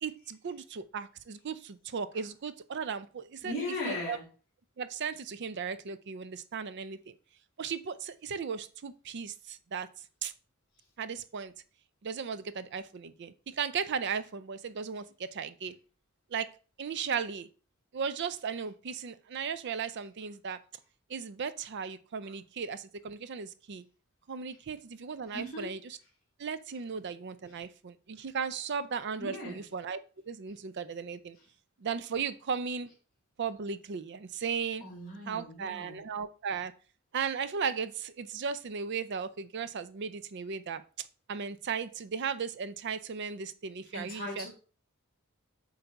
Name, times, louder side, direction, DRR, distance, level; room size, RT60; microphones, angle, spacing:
voice 1, 0.0-3.5 3.9-4.2 4.8-7.2 7.6-9.9 10.2-10.3 11.0-11.5 12.0-15.7 16.3-16.5 16.8-17.5 17.9-20.6 21.1-23.8 24.3-26.0 26.4-30.0 30.3-31.4 31.8-32.9 33.4-34.8 35.3-36.7 37.1-44.5, right 6 dB, 55° right, 14 dB, 0.5 m, -36 dB
voice 2, 3.4-4.2 25.3-25.7 27.5-27.6 28.2-28.3 29.2-29.6 31.3-31.5 34.8-36.0 43.9-44.5, left 2 dB, 40° left, -7 dB, 2.7 m, -38 dB
7.8 x 2.7 x 4.6 m, 0.38 s
head